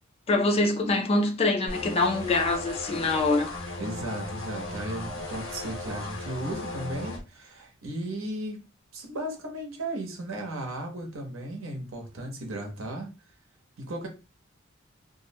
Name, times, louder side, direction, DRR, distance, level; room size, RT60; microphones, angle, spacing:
voice 1, 0.3-3.5, left 2 dB, 30° left, 0.3 m, -24 dB
sound 1, 1.7-7.2, left 2 dB, 75° left, 0.8 m, -36 dB
voice 2, 3.8-8.6 8.9-13.1 13.8-14.1, right 1 dB, 90° right, 0.7 m, -35 dB
2.4 x 2.0 x 2.6 m
head